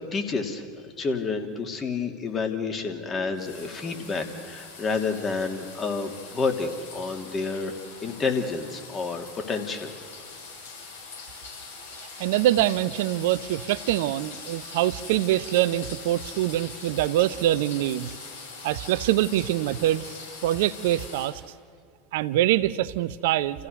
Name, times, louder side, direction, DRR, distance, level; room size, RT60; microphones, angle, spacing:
voice 1, 0.1-0.7 1.0-7.7 8.0-9.9, left 4 dB, 30° left, 4 dB, 2.7 m, -29 dB
sound 1, 3.3-21.3, left 4 dB, 80° left, 7.3 m, -42 dB
voice 2, 12.0-18.1 18.6-20.1 20.4-21.4 22.1-23.7, right 14 dB, 65° right, 15 dB, 0.7 m, -24 dB
29.0 x 15.0 x 6.6 m, 2.3 s
hypercardioid pair, 80°, 0 cm